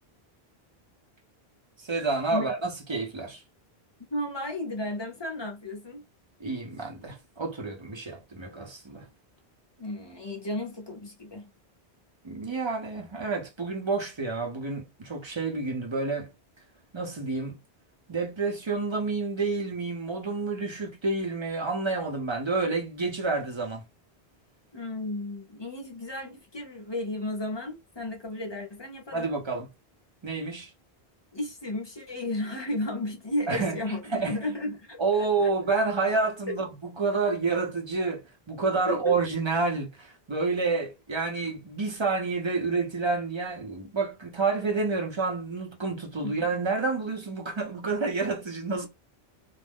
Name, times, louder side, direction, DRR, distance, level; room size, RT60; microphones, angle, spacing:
voice 1, 1.8-3.4 6.4-9.1 12.2-16.3 16.9-17.6 18.1-23.8 29.1-29.7 30.2-30.7 33.5-34.4 35.0-48.9, right 3 dB, 30° right, 0.6 m, -29 dB
voice 2, 4.1-6.0 9.8-11.5 24.7-29.3 31.3-35.5 36.5-36.6 38.9-39.1 46.2-46.3, left 1 dB, 30° left, 0.5 m, -33 dB
2.5 x 2.0 x 3.4 m
omnidirectional pair, 1.1 m